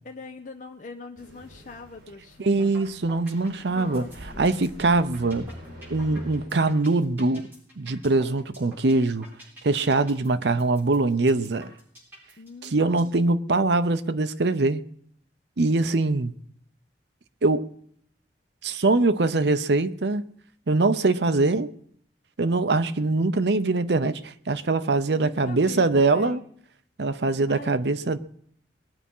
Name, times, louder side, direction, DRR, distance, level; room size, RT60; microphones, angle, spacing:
voice 1, 0.0-2.7 3.7-4.5 12.4-13.2 25.1-26.5 27.5-27.8, left 3 dB, 45° left, 0.8 m, -42 dB
sound 1, 1.2-6.5, equal, 55° right, 7.5 m, -44 dB
voice 2, 2.4-4.0 4.4-5.5 5.9-7.5 7.8-9.3 9.6-11.7 12.6-14.8 15.6-16.3 17.4-17.7 18.6-20.2 20.7-21.7 22.4-26.4 27.0-28.2, right 3 dB, 70° right, 0.7 m, -23 dB
sound 2, 2.6-2.8 3.1-13.2, equal, 10° right, 7.9 m, -47 dB
21.0 x 8.5 x 5.5 m
head